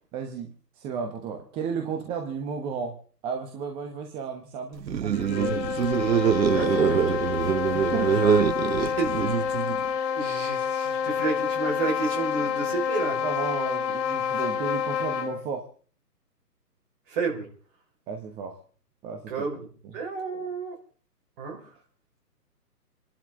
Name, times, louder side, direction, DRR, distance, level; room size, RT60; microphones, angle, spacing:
voice 1, 0.1-3.0 3.2-5.6 6.5-6.9 7.7-8.2 13.2-15.6 18.1-18.6 19.0-19.5, right 6 dB, 10° right, 3 dB, 1.0 m, -34 dB
sound 1, 4.8-9.9, right 8 dB, 85° right, 0.8 m, -24 dB
sound 2, 5.1-15.4, left 7 dB, 20° left, 2.9 m, -28 dB
voice 2, 6.5-7.3 7.8-8.5 8.7-9.6 10.1-13.2 17.1-17.5 19.3-19.7 19.9-20.8 21.4-21.7, right 4 dB, 35° right, 1 dB, 5.2 m, -31 dB
28.0 x 11.5 x 3.7 m, 0.43 s
hypercardioid pair, 145°, 49 cm